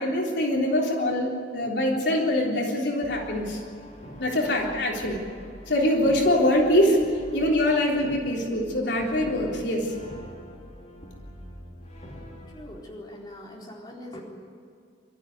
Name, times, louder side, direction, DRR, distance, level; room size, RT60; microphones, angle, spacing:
voice 1, 0.0-3.6 4.2-5.2 5.7-7.0 7.3-9.9, left 1 dB, 70° left, -1 dB, 3.7 m, -24 dB
Brass instrument, 3.0-12.8, equal, 40° left, 3.6 m, -45 dB
voice 2, 12.5-14.2, left 1 dB, 25° left, -3 dB, 4.0 m, -42 dB
25.5 x 13.5 x 9.6 m, 2.3 s
head